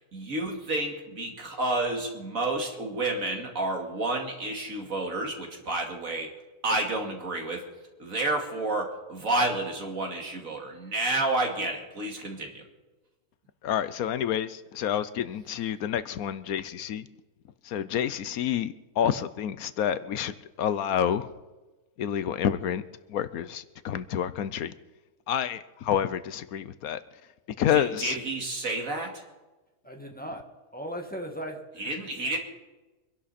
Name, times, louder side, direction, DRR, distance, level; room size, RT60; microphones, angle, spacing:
voice 1, 0.1-6.3 6.6-7.6 8.0-12.6 27.7-29.2 31.8-32.4, right 2 dB, 65° right, 2 dB, 2.6 m, -30 dB
voice 2, 13.6-17.1 17.7-21.3 22.0-22.8 23.1-24.7 25.3-27.0 27.6-28.2, left 9 dB, 80° left, 14 dB, 1.2 m, -28 dB
voice 3, 29.8-30.4 30.7-31.6, equal, 5° left, 2 dB, 1.8 m, -36 dB
24.5 x 11.0 x 4.2 m, 1.1 s
omnidirectional pair, 1.5 m